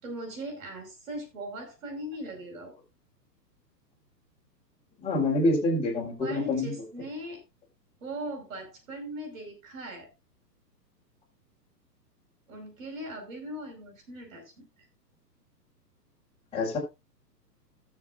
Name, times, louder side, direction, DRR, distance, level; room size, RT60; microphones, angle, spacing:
voice 1, 0.0-2.7 6.2-7.4 8.0-10.1 12.5-14.9, right 1 dB, 50° right, 2 dB, 5.2 m, -39 dB
voice 2, 5.0-6.8 16.5-16.8, left 2 dB, 10° left, -4 dB, 3.9 m, -26 dB
19.0 x 7.0 x 2.5 m, 0.24 s
figure-of-eight pair, 115°, 50 cm